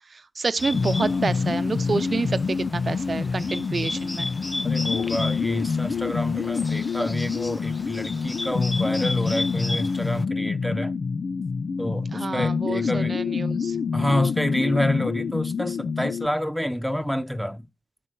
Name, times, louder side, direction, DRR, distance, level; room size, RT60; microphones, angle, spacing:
voice 1, 0.1-4.3 12.1-14.1, right 4 dB, 55° right, 0.7 m, -29 dB
Bird, 0.6-10.2, left 2 dB, 20° left, 0.5 m, -35 dB
sound 1, 0.7-16.3, left 5 dB, 70° left, 0.6 m, -27 dB
voice 2, 4.6-11.0 11.8-13.2 13.9-17.7, left 1 dB, ahead, 1.1 m, -28 dB
12.5 x 4.7 x 7.1 m
wide cardioid pair, 85°, 0 cm